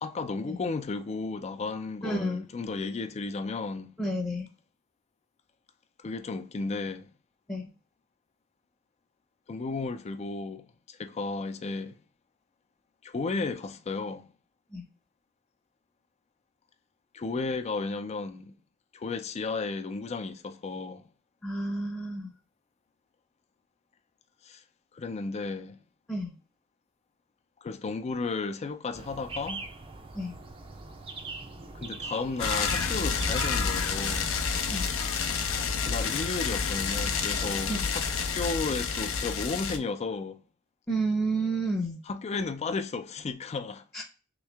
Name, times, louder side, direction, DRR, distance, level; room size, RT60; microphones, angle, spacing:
voice 1, 0.0-3.9 6.0-7.1 9.5-12.0 13.0-14.3 17.1-18.6 18.9-21.0 24.4-24.6 24.9-25.8 27.6-29.6 31.7-34.3 35.8-38.0 38.3-40.4 42.1-43.8, left 3 dB, 30° left, 0.4 m, -33 dB
voice 2, 2.0-2.4 4.0-4.5 7.5-7.7 14.7-14.8 21.4-22.3 26.1-26.3 30.1-30.3 34.7-34.9 37.7-37.9 40.9-42.0 43.9-44.0, right 2 dB, 10° left, 0.7 m, -30 dB
sound 1, 28.9-34.5, right 3 dB, 25° right, 0.5 m, -42 dB
sound 2, 32.4-39.8, left 5 dB, 75° left, 0.6 m, -29 dB
3.2 x 3.1 x 3.3 m
head